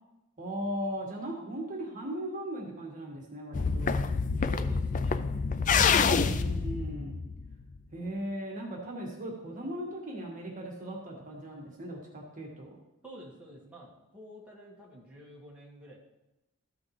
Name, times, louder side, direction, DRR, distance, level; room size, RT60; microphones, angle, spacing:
voice 1, 0.4-4.0 5.7-7.1 7.9-12.8, right 1 dB, 40° right, -1 dB, 1.7 m, -38 dB
sound 1, 3.5-7.8, left 5 dB, 40° left, 0.4 m, -27 dB
voice 2, 4.4-5.3 13.0-16.0, equal, 5° right, -5 dB, 1.8 m, -48 dB
13.5 x 6.0 x 3.3 m, 0.94 s
head